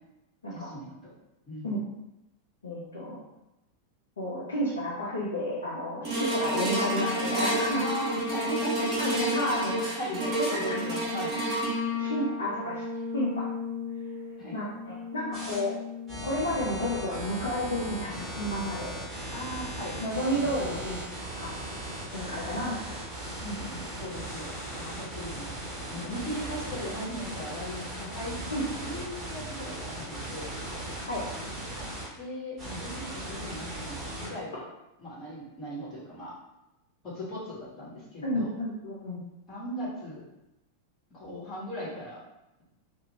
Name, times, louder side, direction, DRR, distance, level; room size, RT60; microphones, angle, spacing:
voice 1, 0.5-1.1 1.5-1.8 7.8-9.4 10.0-11.3 14.4-14.6 19.3-20.8 22.4-22.6 24.0-28.5 28.8-30.5 32.2-34.6 35.0-36.3 37.0-38.5 39.5-40.2 41.1-42.2, equal, 30° left, -7 dB, 1.2 m, -38 dB
voice 2, 2.6-3.2 4.2-7.9 9.0-10.6 12.0-12.8 13.1-13.5 14.5-15.7 16.2-18.9 20.0-21.0 21.4-21.5 21.8-22.7 23.4-23.8 28.5-28.6 31.0-31.2 38.2-39.2, equal, 70° left, -6 dB, 0.5 m, -31 dB
sound 1, 6.0-16.4 17.0-17.1, equal, 30° right, 1.0 m, -31 dB
sound 2, 15.3-15.6 16.1-32.1 32.6-34.3, right 1 dB, 10° right, 1.2 m, -38 dB
2.5 x 2.2 x 2.9 m, 0.93 s
figure-of-eight pair, 90°, 0 cm